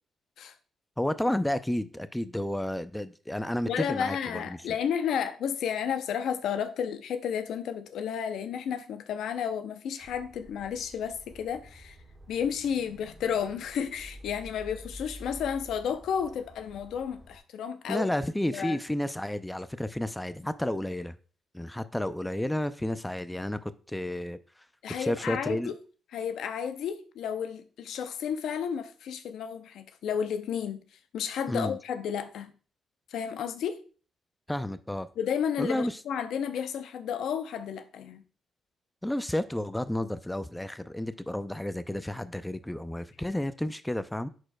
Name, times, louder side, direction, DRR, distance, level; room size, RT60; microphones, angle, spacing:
voice 1, 1.0-4.6 17.9-21.1 21.5-24.4 24.9-25.7 31.5-31.8 34.5-35.1 35.6-36.0 39.0-44.3, left 1 dB, 10° left, 0.5 m, -31 dB
voice 2, 3.6-12.0 12.3-18.1 18.4-18.8 24.8-25.8 26.1-30.8 31.1-32.5 33.1-33.8 35.2-38.2, left 8 dB, 80° left, 0.5 m, -32 dB
sound 1, 10.0-17.4, equal, 15° right, 1.5 m, -49 dB
10.5 x 4.3 x 2.2 m
supercardioid pair, 55°, 0 cm